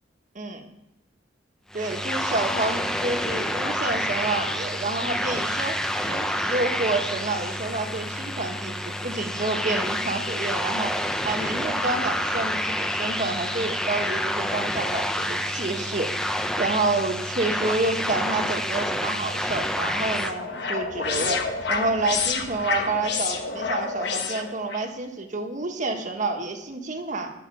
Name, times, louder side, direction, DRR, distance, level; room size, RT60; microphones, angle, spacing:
sound 1, 1.7-20.3, equal, 5° left, 0.6 m, -28 dB
voice 1, 1.7-5.8 6.1-8.8 9.0-10.9 11.2-16.1 16.6-21.4 21.7-27.3, right 3 dB, 45° right, 3 dB, 1.4 m, -28 dB
sound 2, 19.7-24.9, left 5 dB, 65° left, 1.2 m, -29 dB
9.1 x 6.2 x 7.7 m, 0.91 s
head